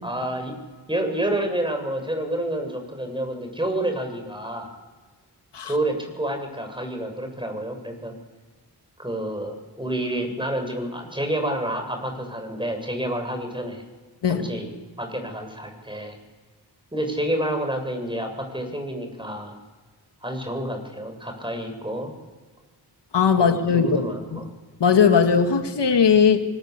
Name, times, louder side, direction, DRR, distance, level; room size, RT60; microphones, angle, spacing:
voice 1, 0.0-0.6 0.9-4.7 5.6-8.1 9.0-13.8 14.3-14.7 15.0-16.2 16.9-19.5 20.2-22.1 23.4-24.4, right 1 dB, 10° right, 5 dB, 8.0 m, -29 dB
voice 2, 23.1-24.4 24.8-26.4, left 6 dB, 80° left, 5 dB, 2.2 m, -19 dB
25.0 x 21.5 x 8.3 m, 1.4 s
cardioid pair, 40°, 41 cm